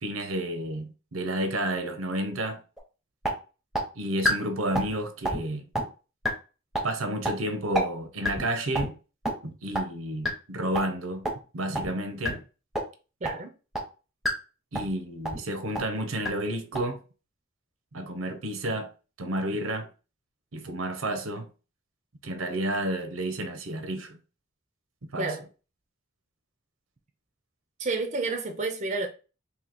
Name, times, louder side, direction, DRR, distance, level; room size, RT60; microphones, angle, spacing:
voice 1, 0.0-2.6 4.0-5.7 6.8-9.0 9.4-11.3 11.5-12.4 14.7-17.0 17.9-18.9 19.2-19.9 20.5-21.5 22.2-24.2 25.1-25.3, right 1 dB, 80° right, 0.7 m, -31 dB
sound 1, 2.8-2.9 3.2-3.3 3.7-3.8 4.2-4.3 4.7-4.9 5.2-5.4 5.7-5.8 6.2-6.3 6.7-6.8 7.2-7.3 7.7-7.8 8.2-8.4 8.7-8.9 9.2-9.3 9.7-9.8 10.2-10.3 10.7-10.8 11.2-11.3 11.7-11.9 12.2-12.3 12.7-12.8 13.2-13.3 13.7-13.8 14.2-14.3 14.7-14.9 15.2-15.4 15.7-15.8 16.2-16.3 16.7-16.8, equal, ahead, 0.7 m, -26 dB
voice 2, 13.2-13.5 25.2-25.5 27.8-29.1, right 3 dB, 35° right, 0.5 m, -30 dB
2.9 x 2.8 x 4.1 m
head